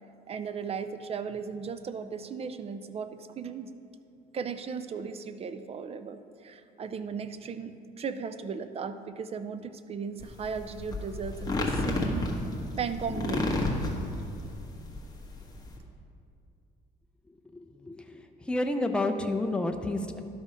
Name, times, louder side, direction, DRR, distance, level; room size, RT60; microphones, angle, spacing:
voice 1, 0.3-3.7 4.3-12.3 12.8-13.5, right 6 dB, 35° right, 11 dB, 0.5 m, -36 dB
sound 1, 10.2-15.8, left 2 dB, 20° left, 1.3 m, -31 dB
voice 2, 17.5-20.2, left 2 dB, 5° left, 5 dB, 0.6 m, -30 dB
11.5 x 5.3 x 5.0 m, 2.5 s
cardioid pair, 110°, 17 cm